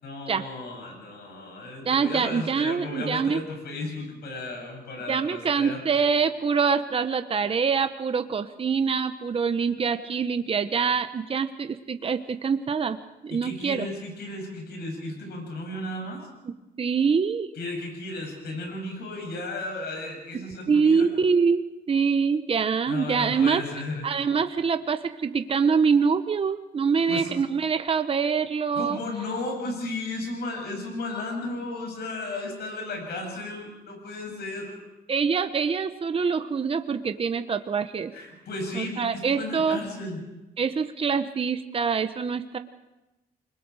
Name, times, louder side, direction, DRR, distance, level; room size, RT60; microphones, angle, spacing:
voice 1, 0.0-6.1 13.3-16.3 17.5-21.1 22.9-24.0 27.1-27.4 28.7-34.8 38.1-40.2, left 2 dB, 80° left, 2 dB, 7.6 m, -34 dB
voice 2, 1.8-3.4 5.1-13.0 13.2-13.9 16.8-17.5 20.7-21.6 21.9-23.6 24.0-29.0 35.1-38.1 38.7-39.8 40.6-42.6, right 5 dB, 35° right, 10 dB, 0.9 m, -25 dB
28.5 x 21.5 x 4.8 m, 1.0 s
cardioid pair, 105°, 17 cm